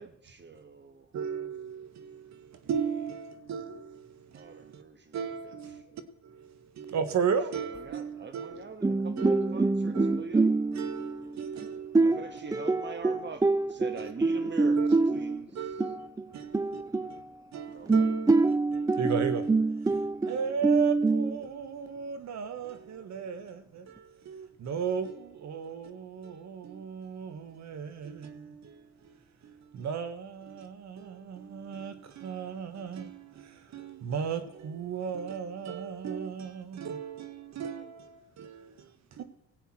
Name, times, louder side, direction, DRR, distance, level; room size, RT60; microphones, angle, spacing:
voice 1, 0.0-1.1 4.3-5.6 7.7-10.5 10.8-11.2 12.0-13.4 13.7-15.5 17.7-18.0, right 4 dB, 35° right, 1.6 m, -43 dB
voice 2, 1.1-4.8 5.1-8.6 9.2-9.6 9.9-12.0 12.4-12.6 14.0-14.1 14.4-15.0 15.3-17.2 17.5-18.3 18.7-19.6 19.9-39.2, right 7 dB, 65° right, 1.5 m, -36 dB
voice 3, 8.8-11.4 11.9-14.0 14.2-15.4 15.8-17.5 17.9-21.4, right 3 dB, 10° right, 0.4 m, -26 dB
17.5 x 8.2 x 4.4 m
cardioid pair, 90°, 30 cm